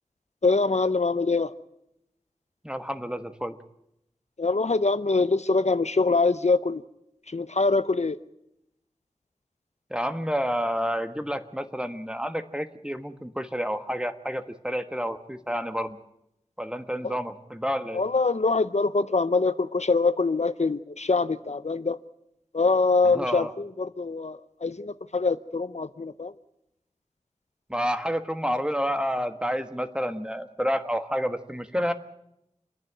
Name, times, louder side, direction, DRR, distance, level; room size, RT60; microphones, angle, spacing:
voice 1, 0.4-1.5 4.4-6.8 7.3-8.2 17.0-17.2 17.9-22.0 22.5-26.3, left 3 dB, 65° left, 13 dB, 0.7 m, -24 dB
voice 2, 2.6-3.6 9.9-16.0 16.6-18.0 23.0-23.5 27.7-31.9, equal, 5° right, 9 dB, 1.4 m, -29 dB
27.5 x 10.5 x 9.1 m, 0.81 s
wide cardioid pair, 50°, 12 cm